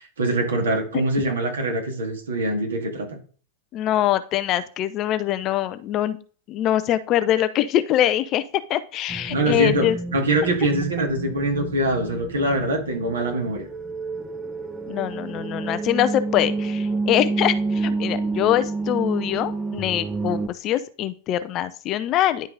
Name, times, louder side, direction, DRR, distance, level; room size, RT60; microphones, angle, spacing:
voice 1, 0.0-3.1 9.3-13.7, right 1 dB, 70° right, 3 dB, 2.0 m, -23 dB
voice 2, 3.7-6.2 6.5-8.4 8.7-10.0 14.9-22.5, left 12 dB, 35° left, 13 dB, 0.5 m, -23 dB
sound 1, 9.1-20.5, right 3 dB, 10° right, 0.7 m, -29 dB
10.5 x 3.8 x 3.8 m, 0.42 s
figure-of-eight pair, 90°, 0 cm